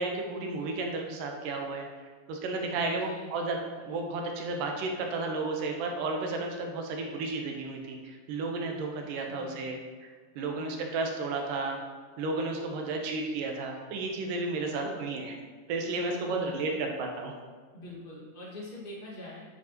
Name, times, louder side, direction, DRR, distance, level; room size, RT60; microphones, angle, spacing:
voice 1, 0.0-1.9 2.3-9.8 10.4-11.8 12.2-15.3 15.7-16.7 17.0-17.3, right 3 dB, 90° right, 2 dB, 2.6 m, -33 dB
voice 2, 2.7-3.3 9.0-9.6 10.5-11.0 14.7-15.1 16.1-16.8 17.7-19.4, left 1 dB, 25° left, -5 dB, 1.2 m, -44 dB
9.6 x 6.2 x 2.9 m, 1.5 s
omnidirectional pair, 3.7 m